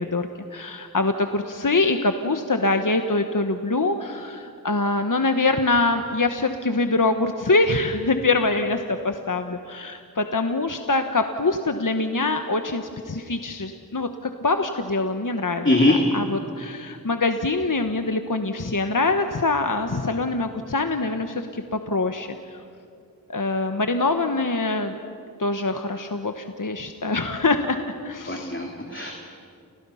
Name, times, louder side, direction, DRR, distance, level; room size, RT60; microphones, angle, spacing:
voice 1, 0.0-22.6 23.3-25.0 25.4-28.5, left 3 dB, 60° left, 6 dB, 1.3 m, -24 dB
voice 2, 15.6-16.0 28.3-29.1, left 2 dB, 30° left, 1 dB, 2.7 m, -21 dB
30.0 x 29.0 x 5.7 m, 2.4 s
wide cardioid pair, 40°, 37 cm